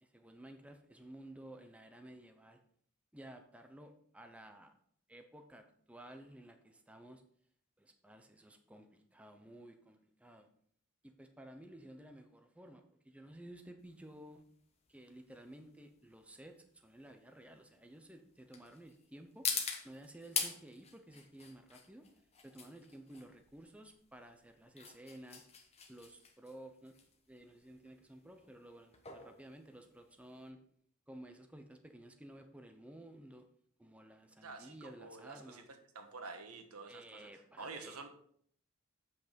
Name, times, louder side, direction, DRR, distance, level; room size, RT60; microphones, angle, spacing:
voice 1, 0.0-2.6 3.1-4.7 5.1-7.2 7.8-10.5 11.0-14.4 14.9-19.5 19.8-22.1 22.4-25.4 25.9-26.9 27.3-30.6 31.1-33.5 33.8-35.7 36.9-38.1, right 1 dB, 5° right, 5 dB, 0.6 m, -54 dB
sound 1, 13.8-30.5, left 6 dB, 30° left, 1.1 m, -44 dB
voice 2, 34.4-35.6 35.9-37.3 37.6-38.1, right 4 dB, 85° right, 6 dB, 1.4 m, -48 dB
7.9 x 6.0 x 5.2 m, 0.63 s
head